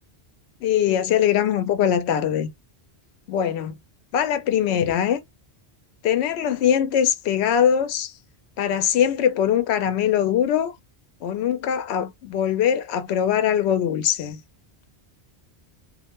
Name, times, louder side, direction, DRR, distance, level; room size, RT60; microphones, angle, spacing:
voice 1, 0.6-2.5 3.3-3.7 4.1-5.2 6.0-8.1 8.6-10.7 11.2-14.4, left 9 dB, 75° left, 0.8 m, -22 dB
2.4 x 2.1 x 2.9 m
omnidirectional pair, 1.1 m